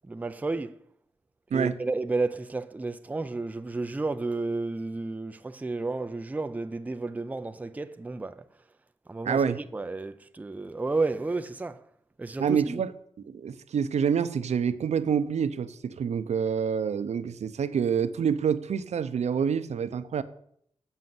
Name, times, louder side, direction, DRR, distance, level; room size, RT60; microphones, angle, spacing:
voice 1, 0.1-0.8 1.5-8.4 9.1-11.8 12.2-12.8, right 3 dB, 15° right, 0.4 m, -32 dB
voice 2, 9.2-9.6 12.4-12.9 13.3-20.2, right 7 dB, 80° right, 0.6 m, -27 dB
7.8 x 5.6 x 7.6 m
wide cardioid pair, 155°, 11 cm